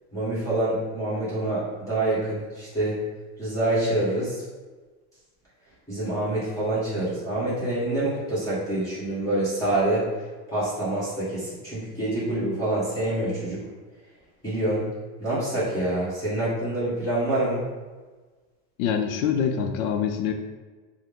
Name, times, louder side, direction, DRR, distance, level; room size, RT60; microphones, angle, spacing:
voice 1, 0.1-3.0 3.4-4.4 5.9-10.1 10.5-13.6 14.4-14.8 15.2-17.6, right 1 dB, 10° left, -12 dB, 1.3 m, -26 dB
voice 2, 18.8-20.3, left 7 dB, 85° left, 5 dB, 0.6 m, -25 dB
5.8 x 2.1 x 3.5 m, 1.3 s
cardioid pair, 170°, 40 cm